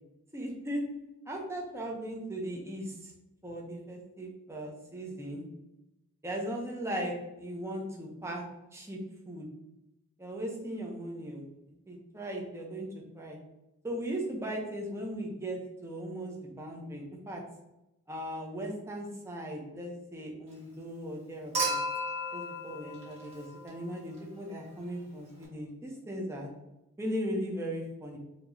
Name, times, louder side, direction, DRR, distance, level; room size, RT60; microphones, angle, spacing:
voice 1, 0.3-0.8 1.3-3.1 3.4-5.4 6.2-8.4 8.7-9.0 9.3-9.5 10.2-11.5 11.9-12.9 13.1-13.4 13.8-17.4 18.1-21.8 22.3-26.5 27.0-28.2, equal, 10° right, -1 dB, 0.7 m, -38 dB
Human group actions / Chink clink / Liquid, 21.5-23.9 25.4-25.5, right 1 dB, 30° right, 1.5 m, -34 dB
4.4 x 2.9 x 2.7 m, 0.92 s
head